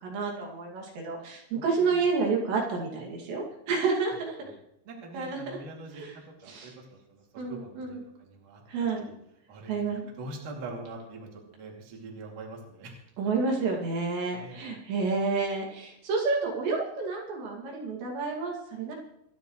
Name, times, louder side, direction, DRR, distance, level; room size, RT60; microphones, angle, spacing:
voice 1, 0.0-4.4 5.1-5.6 5.9-6.2 6.4-6.7 7.4-8.1 8.7-9.1 9.6-10.1 13.2-18.9, right 4 dB, 75° right, -2 dB, 4.6 m, -30 dB
voice 2, 4.9-6.0 6.4-6.7 7.1-7.2 7.5-8.6 9.1-9.2 9.5-9.7 10.2-12.9 14.3-14.6, right 2 dB, 50° right, -1 dB, 3.8 m, -43 dB
26.5 x 11.0 x 3.2 m, 0.78 s
omnidirectional pair, 5.1 m